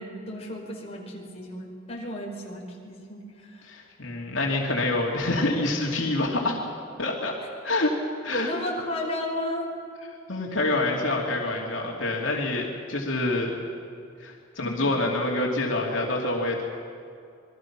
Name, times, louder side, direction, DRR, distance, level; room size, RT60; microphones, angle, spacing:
voice 1, 0.0-3.7 8.3-9.7 14.6-14.9, left 1 dB, 30° left, -2 dB, 4.9 m, -34 dB
voice 2, 3.7-6.6 7.0-7.3 7.6-7.9 8.2-8.5 10.3-13.5 14.2-16.7, left 2 dB, 75° left, -1 dB, 3.0 m, -26 dB
28.0 x 22.0 x 6.2 m, 2.4 s
head